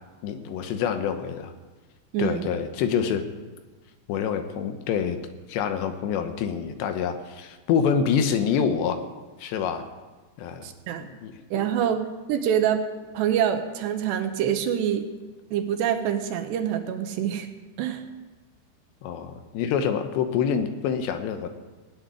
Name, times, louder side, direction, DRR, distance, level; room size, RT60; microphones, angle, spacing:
voice 1, 0.2-1.5 2.2-3.2 4.1-5.2 5.5-9.0 9.4-9.9 10.4-10.7 11.0-11.4 19.0-21.5, left 7 dB, 75° left, 8 dB, 3.1 m, -26 dB
voice 2, 2.1-2.4 10.6-11.1 11.5-12.0 12.3-12.8 13.1-15.0 15.5-17.5 17.8-18.0, right 9 dB, 75° right, 7 dB, 2.9 m, -25 dB
17.5 x 7.8 x 9.7 m, 1.3 s
omnidirectional pair, 5.3 m